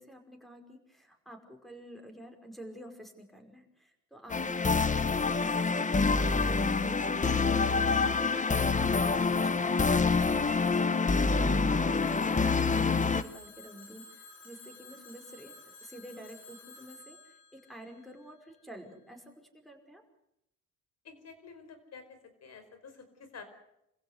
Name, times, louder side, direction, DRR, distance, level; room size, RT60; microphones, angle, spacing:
voice 1, 0.0-20.0, equal, ahead, 4 dB, 5.4 m, -49 dB
sound 1, 4.3-13.2, left 4 dB, 25° left, 1.2 m, -26 dB
Telephone, 11.9-18.7, left 3 dB, 85° left, 6.7 m, -53 dB
voice 2, 21.0-22.0 22.4-23.4, left 5 dB, 55° left, 9 dB, 5.3 m, -51 dB
27.5 x 16.0 x 8.2 m, 0.81 s
cardioid pair, 90°, 30 cm